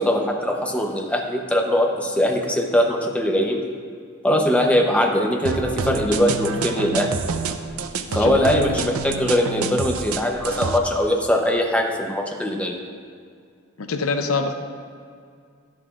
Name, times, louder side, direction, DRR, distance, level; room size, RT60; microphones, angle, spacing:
voice 1, 0.0-3.6 4.2-7.2 8.1-12.8, left 1 dB, 5° left, 2 dB, 0.7 m, -21 dB
sound 1, 5.5-10.8, right 4 dB, 85° right, 0.5 m, -28 dB
voice 2, 13.8-14.5, left 4 dB, 75° left, 7 dB, 0.7 m, -25 dB
12.0 x 11.0 x 2.5 m, 2.2 s
head